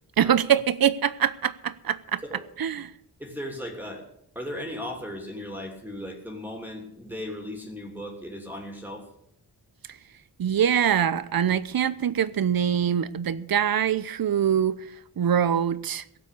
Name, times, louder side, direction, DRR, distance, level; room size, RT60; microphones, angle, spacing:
voice 1, 0.2-2.2 2.6-2.9 10.4-14.8 15.2-16.0, right 9 dB, 65° right, 0.8 m, -24 dB
voice 2, 3.2-4.1 4.3-9.1, left 1 dB, 5° right, 3.1 m, -36 dB
17.5 x 7.6 x 8.3 m
wide cardioid pair, 100°, 39 cm